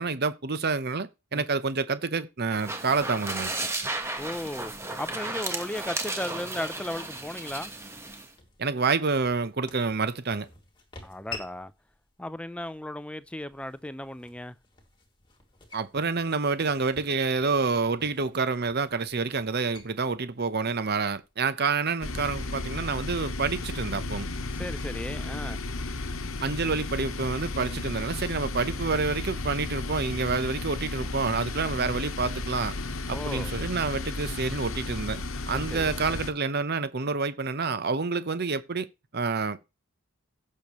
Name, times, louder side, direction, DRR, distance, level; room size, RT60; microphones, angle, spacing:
voice 1, 0.0-3.5 8.6-10.5 15.7-24.3 26.4-32.8 33.1-38.9 39.1-39.6, right 4 dB, 50° right, 0.8 m, -28 dB
sound 1, 2.5-8.3, right 2 dB, 10° right, 1.3 m, -34 dB
voice 2, 4.2-4.7 5.0-7.7 11.0-11.7 12.2-14.6 24.6-25.6 33.1-33.5 35.5-35.9, left 1 dB, 5° left, 0.5 m, -35 dB
sound 2, 5.4-21.3, left 4 dB, 20° left, 2.3 m, -51 dB
sound 3, 22.0-36.3, left 2 dB, 70° left, 1.0 m, -34 dB
16.0 x 6.6 x 3.1 m
head